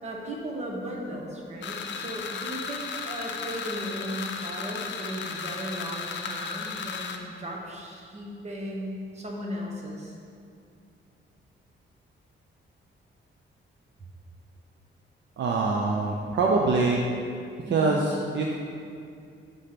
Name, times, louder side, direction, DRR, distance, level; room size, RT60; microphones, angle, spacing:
voice 1, 0.0-10.1 17.7-17.9, equal, 35° right, -2 dB, 1.2 m, -36 dB
sound 1, 1.6-7.2, left 5 dB, 60° left, 0.6 m, -35 dB
voice 2, 15.4-17.0 17.7-18.5, right 3 dB, 65° right, -1 dB, 0.6 m, -24 dB
5.5 x 5.1 x 5.8 m, 2.4 s
wide cardioid pair, 160°, 20 cm